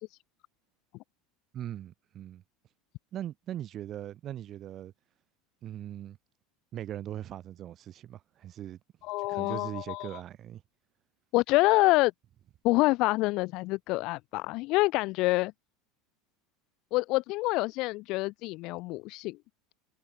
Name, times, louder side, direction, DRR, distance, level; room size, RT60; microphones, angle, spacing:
voice 1, 1.5-2.4 3.1-4.9 5.6-6.2 6.7-8.8 9.2-10.6, right 11 dB, 45° right, 1.6 m, -40 dB
voice 2, 9.1-10.2 11.3-12.1 12.6-15.5 16.9-19.4, left 21 dB, 60° left, 0.4 m, -27 dB
hypercardioid pair, 90°, 0 cm